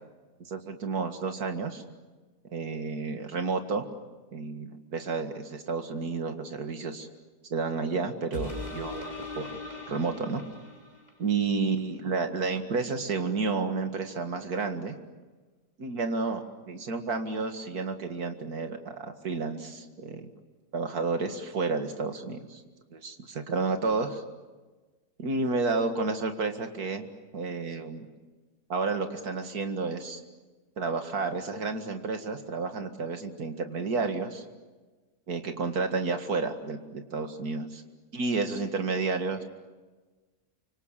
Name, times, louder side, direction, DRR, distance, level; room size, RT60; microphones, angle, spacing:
voice 1, 0.4-1.8 2.5-3.9 4.3-7.1 7.5-9.6 9.9-10.4 11.2-15.0 15.8-20.3 20.7-22.6 22.9-24.2 25.2-27.1 27.3-28.1 28.7-30.2 30.8-34.4 35.3-37.8 38.1-39.4, right 4 dB, 75° right, 6 dB, 2.5 m, -31 dB
sound 1, 8.3-11.3 11.8-11.9, left 2 dB, 25° left, 3.5 m, -40 dB
29.0 x 25.5 x 7.5 m, 1.3 s
omnidirectional pair, 1.6 m